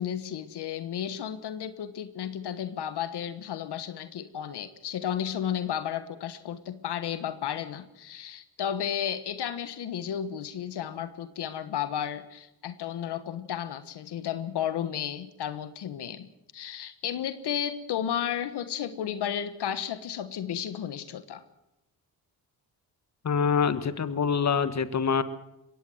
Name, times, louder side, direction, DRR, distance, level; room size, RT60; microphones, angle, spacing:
voice 1, 0.0-21.4, left 9 dB, 70° left, 12 dB, 1.4 m, -33 dB
voice 2, 23.2-25.2, left 6 dB, 40° left, 12 dB, 1.5 m, -25 dB
22.0 x 17.0 x 7.8 m, 0.90 s
cardioid pair, 75°, 41 cm